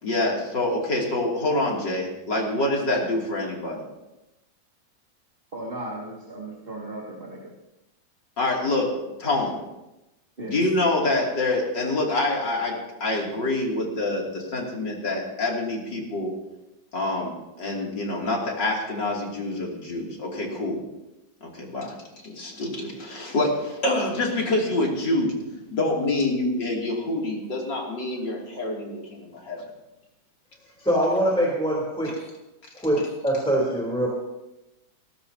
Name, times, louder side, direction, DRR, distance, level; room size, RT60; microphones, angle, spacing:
voice 1, 0.0-3.8 8.4-8.9 9.2-9.6 10.4-12.7 13.0-16.3 16.9-20.8 21.4-21.9 22.2-29.6, left 2 dB, 65° left, -2 dB, 3.5 m, -26 dB
voice 2, 5.5-7.5 10.4-10.6, right 1 dB, 30° right, -4 dB, 2.3 m, -36 dB
voice 3, 30.8-32.1 32.8-34.1, right 1 dB, 5° left, -4 dB, 3.4 m, -23 dB
18.5 x 18.0 x 2.9 m, 0.97 s
omnidirectional pair, 2.1 m